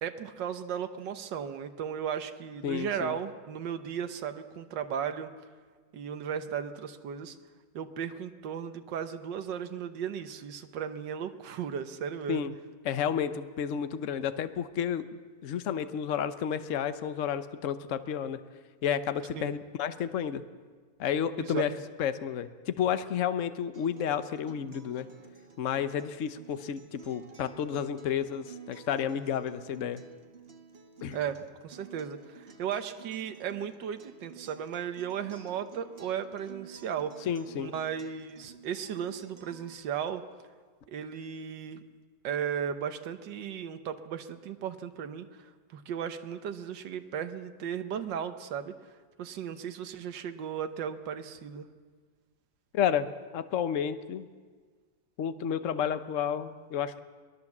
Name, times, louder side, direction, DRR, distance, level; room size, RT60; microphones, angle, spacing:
voice 1, 0.0-5.3 5.9-7.4 7.7-12.5 19.4-19.5 21.4-21.6 31.1-37.3 37.6-40.2 40.9-41.8 42.2-48.7 49.2-51.7, right 8 dB, 80° right, 8 dB, 1.7 m, -36 dB
voice 2, 2.6-3.2 12.3-12.5 12.8-15.0 15.4-18.4 18.8-20.4 21.0-21.7 22.0-25.1 25.6-30.0 31.0-31.2 37.3-37.7 52.7-53.1 53.3-54.3 55.2-57.0, left 8 dB, 50° left, 11 dB, 1.1 m, -31 dB
Acoustic guitar, 23.7-39.7, right 6 dB, 35° right, 1.4 m, -52 dB
23.0 x 20.0 x 7.3 m, 1.5 s
omnidirectional pair, 1.9 m